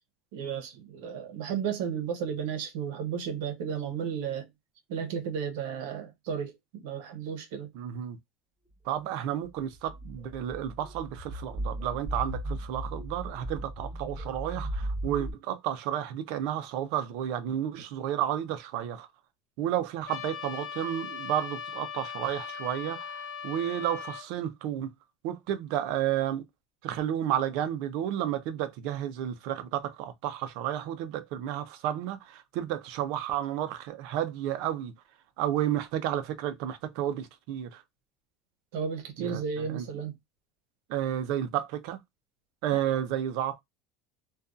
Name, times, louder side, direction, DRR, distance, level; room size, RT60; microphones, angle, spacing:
voice 1, 0.3-4.5 4.9-7.7 38.7-40.1 42.7-43.0, right 7 dB, 85° right, 0.8 m, -34 dB
voice 2, 7.7-8.2 8.8-19.1 19.6-24.9 25.2-26.5 26.8-34.9 35.4-37.8 39.2-39.4 39.7-39.9 40.9-42.0 42.6-43.6, right 11 dB, 65° right, 0.5 m, -31 dB
sound 1, 9.6-15.3, right 1 dB, ahead, 1.2 m, -36 dB
Trumpet, 20.1-24.3, left 7 dB, 45° left, 0.7 m, -39 dB
2.6 x 2.3 x 2.3 m
cardioid pair, 160°, 0 cm